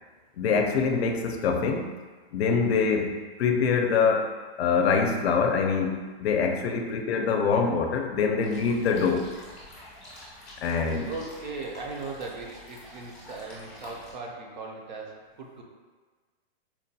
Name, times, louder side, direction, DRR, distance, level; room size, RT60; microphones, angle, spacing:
voice 1, 0.4-1.9 2.3-4.3 4.6-9.3 10.6-11.1, left 5 dB, 75° left, 4 dB, 0.5 m, -24 dB
sound 1, 8.4-14.1, left 1 dB, 5° left, 0.5 m, -47 dB
voice 2, 10.7-15.6, right 3 dB, 45° right, 0 dB, 0.5 m, -39 dB
4.4 x 2.2 x 2.7 m, 1.4 s
hypercardioid pair, 175°, 32 cm